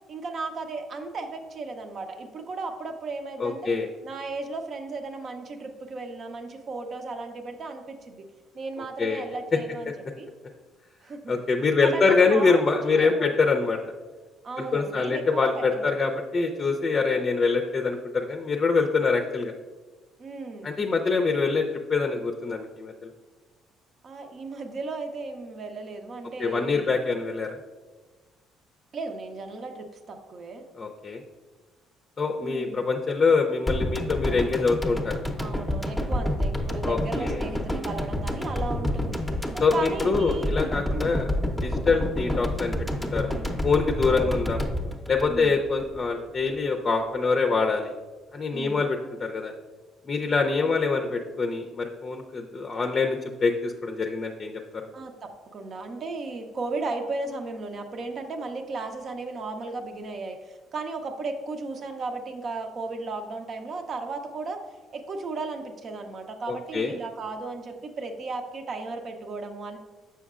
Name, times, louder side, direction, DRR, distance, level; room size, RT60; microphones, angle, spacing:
voice 1, 0.1-3.7 4.0-8.3 8.5-10.3 11.0-11.3 11.8-13.4 14.4-15.9 20.2-20.8 24.0-26.9 28.9-30.6 32.4-32.9 35.4-40.5 40.9-41.2 44.0-44.5 45.3-45.6 48.5-48.9 50.6-50.8 54.9-64.6 64.9-69.8, right 3 dB, 50° right, 5 dB, 0.7 m, -35 dB
voice 2, 3.4-3.9 9.0-9.2 11.3-13.8 14.6-19.5 20.6-21.6 21.9-23.1 26.4-27.6 30.8-31.2 32.2-35.1 36.8-37.4 39.6-41.3 41.6-42.7 43.0-43.3 43.6-44.6 45.1-47.9 48.3-49.5 50.1-54.8 66.5-67.0, left 4 dB, 35° left, 4 dB, 0.5 m, -25 dB
sound 1, 33.7-46.0 46.3-46.4, left 1 dB, 5° left, 0.7 m, -29 dB
7.0 x 5.7 x 2.4 m, 1.3 s
supercardioid pair, 70°, 0 cm